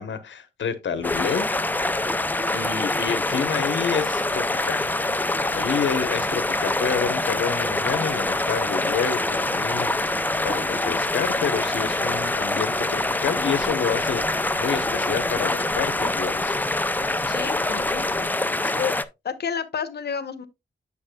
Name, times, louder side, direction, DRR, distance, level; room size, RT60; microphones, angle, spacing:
voice 1, 0.0-1.5 2.5-4.9 5.5-16.5 18.6-18.8, left 6 dB, 90° left, 1.0 m, -29 dB
London Tube Ride, 0.9-18.3, right 2 dB, 90° right, 1.7 m, -46 dB
sound 1, 1.0-19.0, left 2 dB, 10° left, 0.4 m, -25 dB
sound 2, 7.3-16.5, right 1 dB, 50° right, 5.1 m, -47 dB
voice 2, 17.3-19.0 19.2-20.5, left 7 dB, 60° left, 0.9 m, -31 dB
8.6 x 7.0 x 2.3 m
wide cardioid pair, 150°, 19 cm